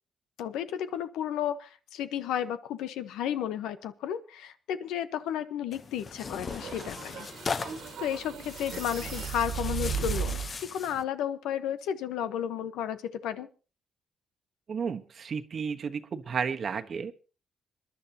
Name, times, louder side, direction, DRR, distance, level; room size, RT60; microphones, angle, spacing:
voice 1, 0.4-7.3 8.0-10.4 10.7-13.5, left 9 dB, 90° left, 11 dB, 1.1 m, -33 dB
Tearing, 5.7-11.0, left 5 dB, 40° left, 0.9 m, -39 dB
sound 1, 6.5-10.5, right 7 dB, 75° right, 1.8 m, -35 dB
voice 2, 14.7-17.1, right 6 dB, 50° right, 7 dB, 1.2 m, -32 dB
26.5 x 11.0 x 2.9 m, 0.35 s
cardioid pair, 90°, 0 cm